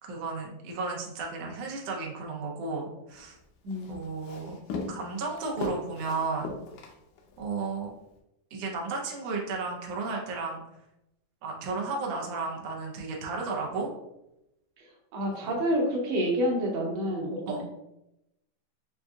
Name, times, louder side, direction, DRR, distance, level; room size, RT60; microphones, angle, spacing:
voice 1, 0.0-3.4 3.9-4.6 4.9-6.5 7.4-7.9 8.5-10.6 11.4-13.9 15.4-15.5 17.5-17.6, right 4 dB, 90° right, -1 dB, 1.4 m, -33 dB
Walk footsteps, 3.1-7.5, left 3 dB, 75° left, 2.0 m, -39 dB
voice 2, 15.1-17.6, equal, 65° right, -1 dB, 1.7 m, -28 dB
7.2 x 2.6 x 2.3 m, 0.87 s
omnidirectional pair, 3.9 m